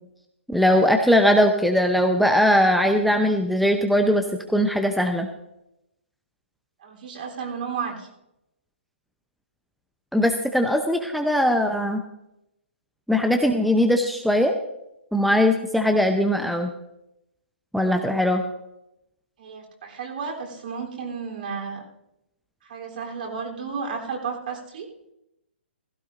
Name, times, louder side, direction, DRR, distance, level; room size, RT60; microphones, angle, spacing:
voice 1, 0.5-4.2 4.5-5.3 10.1-12.0 13.1-14.5 15.1-16.7 17.7-18.4, equal, ahead, 5 dB, 0.7 m, -20 dB
voice 2, 6.8-8.1 19.4-21.8 22.6-24.9, right 5 dB, 50° right, -1 dB, 3.6 m, -33 dB
16.0 x 15.5 x 2.6 m, 0.85 s
figure-of-eight pair, 130°, 6 cm